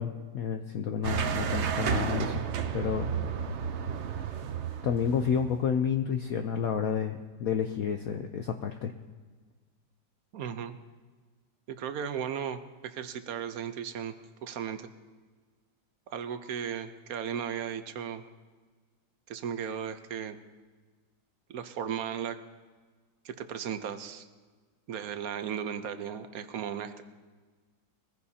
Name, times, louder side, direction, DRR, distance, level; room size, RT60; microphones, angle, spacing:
voice 1, 0.0-2.4 2.7-3.1 4.8-8.9, left 7 dB, 65° left, 6 dB, 0.9 m, -30 dB
sound 1, 1.0-5.7, right 7 dB, 85° right, 0.6 m, -32 dB
voice 2, 10.3-10.8 11.7-14.1 14.4-14.9 16.1-18.2 19.3-20.4 21.5-22.4 23.2-24.2 24.9-27.0, right 8 dB, 60° right, 9 dB, 1.1 m, -36 dB
22.0 x 15.0 x 2.8 m, 1.4 s
omnidirectional pair, 2.1 m